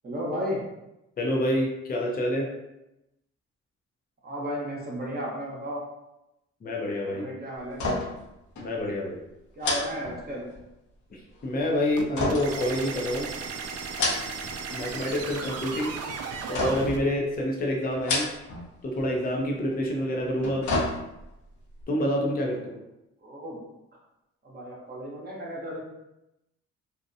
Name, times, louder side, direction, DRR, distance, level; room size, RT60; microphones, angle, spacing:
voice 1, 0.0-0.6 4.2-5.8 7.1-7.9 9.6-10.5 23.2-23.6 24.4-25.8, equal, 30° right, -4 dB, 0.9 m, -34 dB
voice 2, 1.2-2.5 6.6-7.2 8.6-9.2 11.4-13.3 14.7-15.9 16.5-18.3 18.8-20.7 21.9-22.8, left 1 dB, 30° left, -1 dB, 0.6 m, -27 dB
sound 1, 7.7-8.3 8.6-8.7 9.6-10.7 12.1-13.3 13.8-14.6 14.9-15.5 16.5-17.0 17.9-18.7 19.0-19.1 20.2-21.4 21.8-21.9, left 2 dB, 70° left, 0.8 m, -30 dB
sound 2, 12.0-17.0, right 5 dB, 55° right, 0.4 m, -35 dB
2.7 x 2.1 x 2.6 m, 0.92 s
cardioid pair, 90°, 30 cm